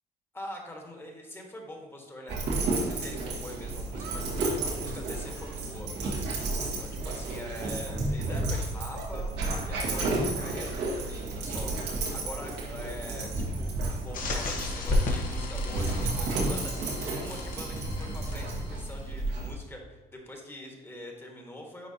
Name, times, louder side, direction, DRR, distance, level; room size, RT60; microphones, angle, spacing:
voice 1, 0.3-5.9 6.8-9.3 9.6-13.8 14.0-21.9, left 1 dB, 15° left, 1 dB, 1.5 m, -44 dB
Dog, 2.3-19.5, right 2 dB, 80° right, 1.8 m, -32 dB
sound 1, 3.1-3.2 3.9-6.6 6.9-7.8 8.3-8.5 8.9-9.2 9.7-11.4 11.7-12.0 13.2-14.6, right 4 dB, 65° right, 1.1 m, -49 dB
sound 2, 14.1-19.0, left 2 dB, 55° left, 1.4 m, -33 dB
10.0 x 4.4 x 2.9 m, 1.3 s
cardioid pair, 110°, 17 cm